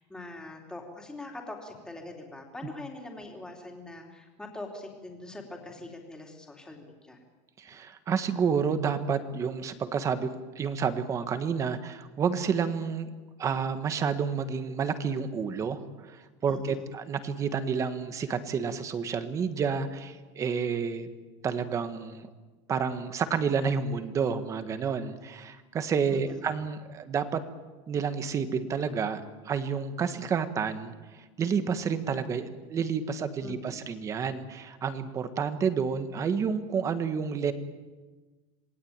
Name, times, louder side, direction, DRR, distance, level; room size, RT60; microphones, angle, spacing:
voice 1, 0.0-7.2 16.5-16.9 26.1-26.4 33.4-33.8, left 2 dB, 5° left, 1 dB, 3.5 m, -43 dB
voice 2, 7.6-13.1 13.4-21.1 21.4-22.3 22.7-27.4 27.9-37.5, right 6 dB, 20° right, 10 dB, 1.5 m, -30 dB
27.0 x 20.5 x 8.9 m, 1.3 s
cardioid pair, 175°, 15 cm